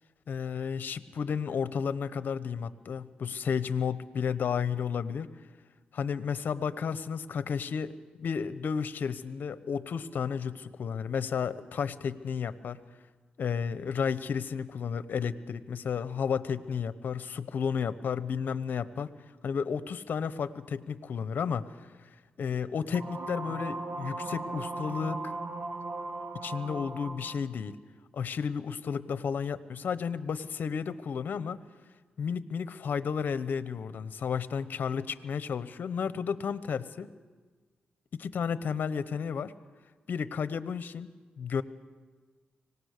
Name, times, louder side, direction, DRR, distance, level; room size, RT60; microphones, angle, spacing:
voice 1, 0.3-5.3 5.9-7.9 8.2-12.8 13.4-19.1 19.4-21.7 22.4-25.4 26.3-27.8 28.1-31.6 32.2-37.1 38.2-39.5 40.1-41.1 41.4-41.6, left 6 dB, 65° left, 14 dB, 0.9 m, -32 dB
sound 1, 22.9-27.5, right 2 dB, 75° right, 2.7 m, -37 dB
25.0 x 18.5 x 6.6 m, 1.4 s
cardioid pair, 85°, 3 cm